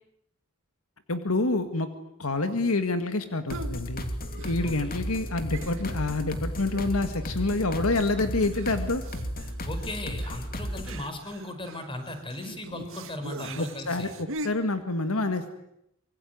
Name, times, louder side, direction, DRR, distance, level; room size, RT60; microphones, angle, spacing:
voice 1, 1.1-1.9 2.2-4.1 4.4-9.0 13.6-14.1 14.4-15.6, left 2 dB, 70° left, 8 dB, 2.0 m, -27 dB
sound 1, 3.5-11.0, equal, 45° left, 3.0 m, -34 dB
sound 2, 3.5-3.8 4.3-4.9 5.1-5.2 5.5-6.1 6.6-7.1 7.4-7.5 8.4-14.5, right 2 dB, 65° right, 2.1 m, -42 dB
voice 2, 4.6-4.9 9.6-14.1, left 1 dB, 25° left, 8 dB, 5.0 m, -37 dB
25.5 x 23.5 x 9.4 m, 0.79 s
head